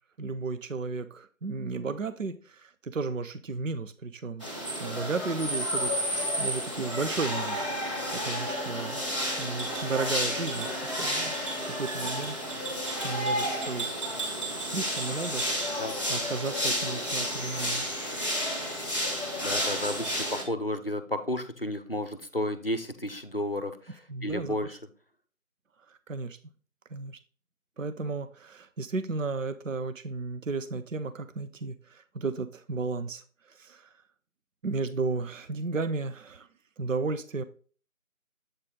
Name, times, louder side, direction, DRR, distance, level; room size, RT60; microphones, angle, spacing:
voice 1, 0.2-4.5 4.8-5.9 6.4-9.0 9.4-10.7 11.0-11.3 11.7-12.3 13.0-14.1 14.6-15.8 16.1-17.9 24.1-24.6 26.1-26.4 26.9-27.2 27.8-33.9 34.6-36.5 36.8-37.4, right 4 dB, 65° right, 0.6 m, -34 dB
sound 1, 4.4-20.4, equal, 20° right, 1.5 m, -31 dB
Bowed string instrument, 8.2-13.9, right 3 dB, 45° right, 1.3 m, -45 dB
voice 2, 19.4-24.8, left 1 dB, 45° left, 0.6 m, -32 dB
7.9 x 4.1 x 3.7 m
figure-of-eight pair, 170°, 42 cm